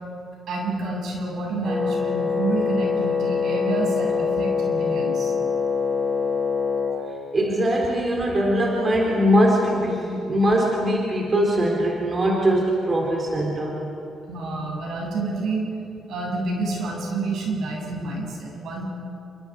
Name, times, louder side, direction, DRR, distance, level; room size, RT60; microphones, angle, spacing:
voice 1, 0.5-5.3 14.3-15.7 16.1-18.8, right 2 dB, 75° right, -1 dB, 8.0 m, -28 dB
Wind instrument woodwind instrument, 1.6-7.0, left 5 dB, 15° right, 4.8 m, -24 dB
voice 2, 7.3-13.8, equal, 35° right, -1 dB, 3.8 m, -21 dB
28.5 x 25.0 x 5.1 m, 2.7 s
cardioid pair, 90°, 0 cm